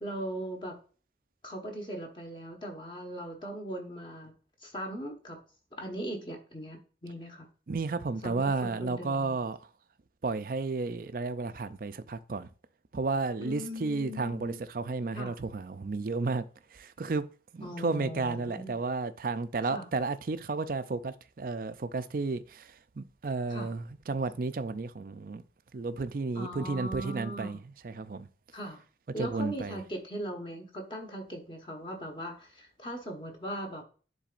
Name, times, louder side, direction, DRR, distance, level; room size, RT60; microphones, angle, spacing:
voice 1, 0.0-0.7 1.4-4.3 4.6-5.4 5.8-7.5 8.2-9.4 13.4-14.6 15.1-15.3 17.6-18.8 19.6-19.9 23.5-23.7 26.3-27.6 28.5-28.8 29.1-33.8, equal, 25° left, 1.3 m, -39 dB
voice 2, 7.7-9.6 10.2-12.5 12.9-16.4 16.8-17.2 17.5-22.6 23.0-25.4 25.7-27.6 27.8-28.3 29.2-29.8, right 3 dB, 50° right, 0.4 m, -32 dB
10.0 x 3.9 x 2.5 m
head